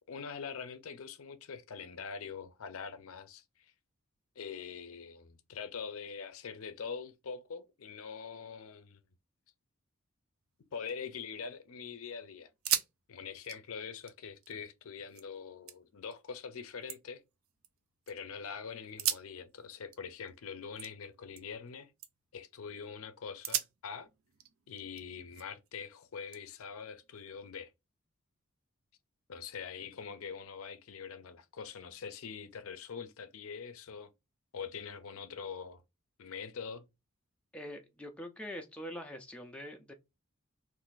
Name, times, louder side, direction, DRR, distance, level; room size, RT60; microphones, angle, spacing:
voice 1, 0.1-3.7 4.4-9.0 10.7-12.5 13.1-17.2 18.1-21.9 22.3-24.1 24.7-27.7 29.3-34.1 34.5-35.8 36.2-36.9, left 6 dB, 70° left, 0.5 m, -44 dB
sound 1, 10.6-11.7 12.0-12.1 12.5-12.9 13.2-15.3 15.7-16.2 16.6-18.1 18.8-21.7 22.0-22.4 22.8-23.0 23.4-25.7 26.3-27.5, right 10 dB, 65° right, 0.5 m, -40 dB
voice 2, 37.5-39.9, equal, 5° left, 0.4 m, -44 dB
2.5 x 2.5 x 3.8 m
head